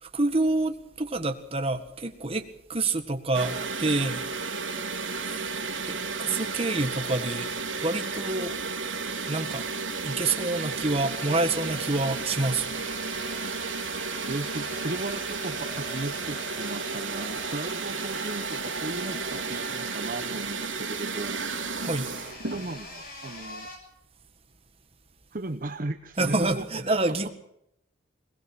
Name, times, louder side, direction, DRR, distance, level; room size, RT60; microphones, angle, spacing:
voice 1, 0.0-4.2 5.1-5.6 5.8-7.5 7.8-8.6 9.3-9.6 10.0-12.7 21.8-22.1 26.2-27.3, right 2 dB, 30° right, 7 dB, 1.8 m, -27 dB
sound 1, 3.3-22.7, right 4 dB, 80° right, 3.6 m, -33 dB
sound 2, 10.1-23.8, left 2 dB, 50° left, 6.9 m, -45 dB
voice 2, 14.3-21.5 22.5-23.7 25.3-27.3, right 2 dB, 45° right, 8 dB, 0.9 m, -36 dB
21.5 x 20.5 x 6.1 m, 0.77 s
head